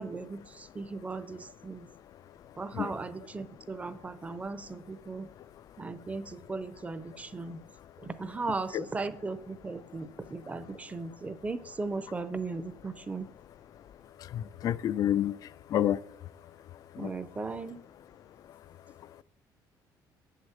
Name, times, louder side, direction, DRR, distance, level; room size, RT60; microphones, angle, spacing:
voice 1, 0.0-1.9 2.6-5.3 5.8-7.6 8.0-13.3 17.0-17.8, right 3 dB, 20° right, 0.7 m, -37 dB
voice 2, 14.2-16.0 16.9-17.1, left 11 dB, 50° left, 0.4 m, -29 dB
8.0 x 6.6 x 7.3 m
cardioid pair, 125°, 8 cm